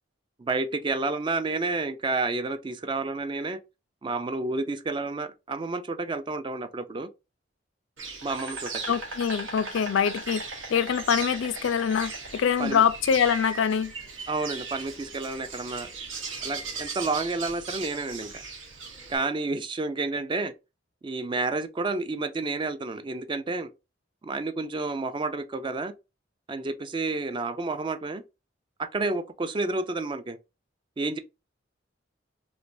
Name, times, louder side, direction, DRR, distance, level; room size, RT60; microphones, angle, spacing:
voice 1, 0.4-3.6 4.0-7.1 8.2-8.7 12.6-12.8 14.3-15.9 16.4-18.4 19.1-20.5 21.0-23.7 24.2-25.9 26.5-28.2 28.8-30.4 31.0-31.2, right 3 dB, 25° right, 0.3 m, -30 dB
Insect, 8.0-19.2, right 4 dB, 90° right, 1.2 m, -38 dB
voice 2, 8.9-10.4 10.7-13.9, left 7 dB, 80° left, 0.4 m, -24 dB
3.2 x 2.9 x 2.6 m
head